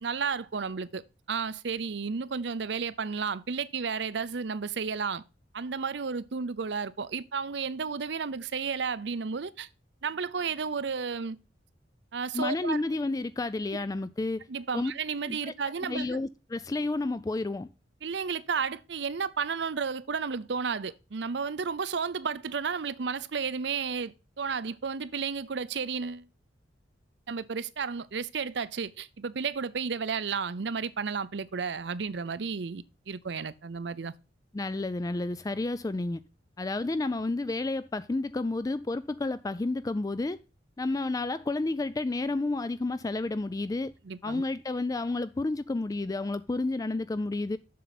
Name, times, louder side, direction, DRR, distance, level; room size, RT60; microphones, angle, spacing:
voice 1, 0.0-5.2 5.5-9.7 10.0-11.4 12.1-12.8 14.5-16.1 18.0-26.3 27.3-34.1 44.1-44.4, right 5 dB, 65° right, 0.6 m, -32 dB
voice 2, 12.3-14.5 14.7-14.9 15.4-15.5 15.9-17.7 34.5-36.2 36.6-40.4 40.8-43.9 44.2-47.6, left 2 dB, 20° left, 0.3 m, -31 dB
7.6 x 6.8 x 4.0 m
head